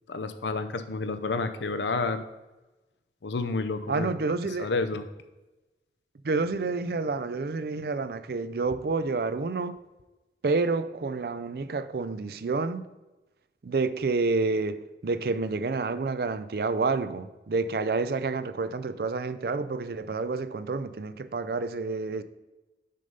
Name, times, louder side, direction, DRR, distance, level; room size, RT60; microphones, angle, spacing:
voice 1, 0.1-2.2 3.2-4.1 4.6-5.0, left 3 dB, 85° left, 0.6 m, -30 dB
voice 2, 3.9-4.7 6.2-9.8 10.4-12.8 13.6-22.2, right 3 dB, 60° right, 0.4 m, -29 dB
6.6 x 5.1 x 5.5 m
head